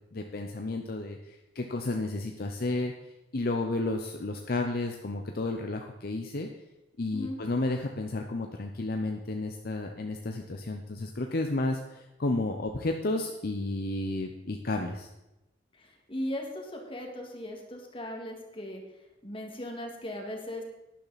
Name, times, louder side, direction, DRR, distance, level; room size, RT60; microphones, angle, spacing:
voice 1, 0.1-2.9 3.3-6.5 7.0-15.1, left 2 dB, 55° left, 4 dB, 0.8 m, -32 dB
voice 2, 15.7-18.8 19.2-20.6, left 1 dB, 30° left, 1 dB, 2.1 m, -38 dB
12.0 x 10.0 x 4.2 m, 0.95 s
head